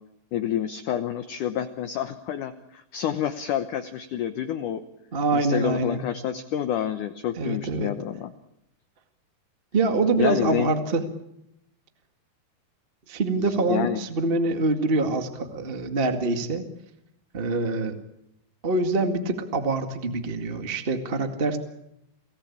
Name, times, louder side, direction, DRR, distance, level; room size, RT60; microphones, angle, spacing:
voice 1, 0.3-4.8 5.3-8.3 10.2-10.7 13.4-14.0, left 10 dB, 65° left, 9 dB, 2.1 m, -28 dB
voice 2, 5.1-6.0 7.4-7.9 9.7-11.0 13.1-16.6 17.3-18.0 18.6-21.6, right 3 dB, 30° right, 7 dB, 1.0 m, -25 dB
29.5 x 18.5 x 8.7 m, 0.81 s
omnidirectional pair, 4.7 m